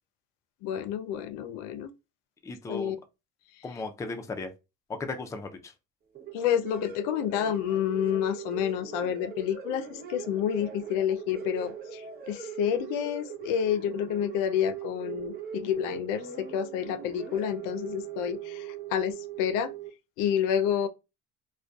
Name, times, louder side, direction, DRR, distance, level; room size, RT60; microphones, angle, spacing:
voice 1, 0.6-1.9 2.7-3.0 6.3-19.7 20.2-20.9, left 9 dB, 85° left, 0.5 m, -29 dB
voice 2, 2.4-3.0 3.6-4.5 4.9-5.7, left 3 dB, 10° left, 0.3 m, -36 dB
sound 1, 6.1-19.9, right 8 dB, 30° right, 0.8 m, -40 dB
2.5 x 2.1 x 2.2 m
cardioid pair, 100°, 31 cm